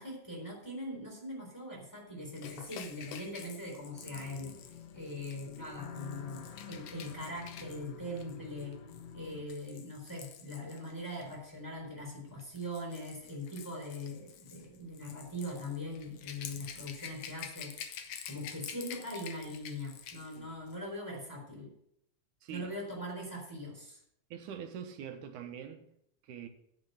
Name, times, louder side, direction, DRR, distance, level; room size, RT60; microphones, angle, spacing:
voice 1, 0.0-4.5 4.9-8.8 9.1-21.7 22.5-24.0, left 1 dB, 5° left, 3.4 m, -41 dB
Rattle / Rattle (instrument), 2.3-11.4 12.3-20.4 20.7-20.8, left 8 dB, 70° left, 1.7 m, -49 dB
sound 1, 3.9-9.5, left 6 dB, 85° left, 1.0 m, -49 dB
voice 2, 22.4-22.7 24.3-25.8 26.2-26.5, right 8 dB, 80° right, 2.4 m, -44 dB
9.9 x 5.1 x 7.8 m
omnidirectional pair, 3.7 m